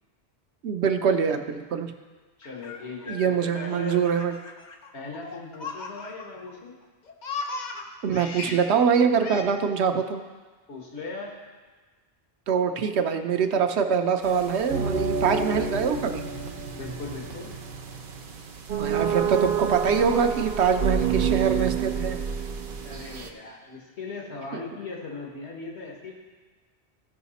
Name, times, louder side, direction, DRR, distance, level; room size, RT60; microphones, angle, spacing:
voice 1, 0.6-1.9 3.1-4.3 8.0-10.2 12.5-16.2 18.8-22.2, right 6 dB, 90° right, 7 dB, 1.0 m, -24 dB
voice 2, 2.4-4.0 4.9-6.8 10.7-11.3 16.7-17.5 22.8-26.1, left 3 dB, 90° left, -2 dB, 1.7 m, -38 dB
Laughter, 2.4-6.5 6.8-8.7 9.2-9.4, left 4 dB, 45° left, 0.8 m, -37 dB
Rain & FM, 14.2-23.3, right 6 dB, 55° right, 0.8 m, -29 dB
15.5 x 5.7 x 4.1 m, 1.4 s
omnidirectional pair, 1.1 m